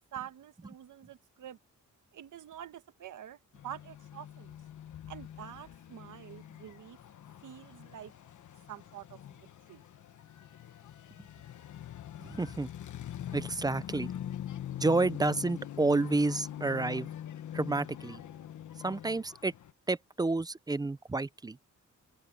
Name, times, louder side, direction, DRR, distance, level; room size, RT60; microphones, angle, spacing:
voice 1, 0.1-1.6 2.1-3.4 3.6-4.6 5.1-7.0 7.4-8.1 8.7-9.8, right 10 dB, 80° right, 1.4 m, -47 dB
sound 1, 3.5-19.7, left 11 dB, 75° left, 1.3 m, -44 dB
voice 2, 12.2-12.7 13.3-14.1 14.8-17.1 17.5-18.2 18.8-19.5 19.9-21.6, right 3 dB, 15° right, 0.4 m, -30 dB
open air
wide cardioid pair, 160°, 30 cm